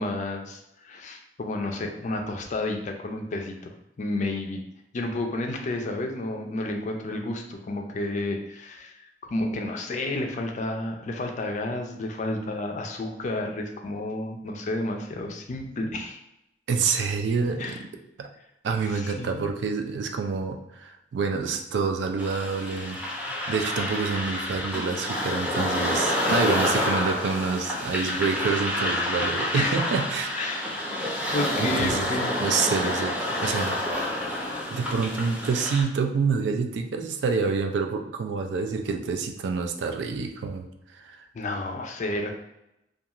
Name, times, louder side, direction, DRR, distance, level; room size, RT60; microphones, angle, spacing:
voice 1, 0.0-4.6 4.9-16.2 17.6-17.8 18.9-19.5 29.5-29.8 30.4-30.6 31.3-32.3 41.3-42.3, left 2 dB, 45° left, 3 dB, 0.4 m, -31 dB
voice 2, 16.7-17.9 18.2-18.3 18.6-23.0 23.3-30.3 31.2-32.1 32.4-33.8 34.7-40.7 40.9-41.2, right 5 dB, 75° right, 5 dB, 0.3 m, -27 dB
sound 1, 22.2-35.8, left 1 dB, 5° right, 0.7 m, -28 dB
2.4 x 2.3 x 2.9 m, 0.85 s
head